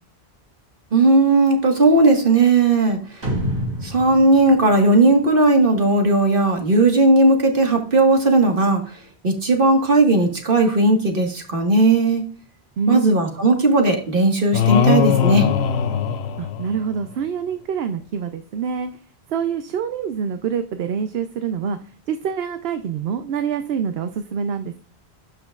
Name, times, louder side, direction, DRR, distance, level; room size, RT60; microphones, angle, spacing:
voice 1, 0.9-3.0 3.8-8.8 9.2-12.2 12.9-15.5, right 2 dB, 55° right, 3 dB, 1.8 m, -16 dB
sound 1, 3.2-5.7, equal, 90° right, 3.5 m, -28 dB
voice 2, 12.8-13.2 16.4-18.9 19.3-21.8 22.1-24.8, right 6 dB, 70° right, 9 dB, 0.9 m, -26 dB
sound 2, 14.5-17.0, left 7 dB, 75° left, 0.9 m, -20 dB
12.0 x 5.9 x 2.4 m, 0.42 s
omnidirectional pair, 1.1 m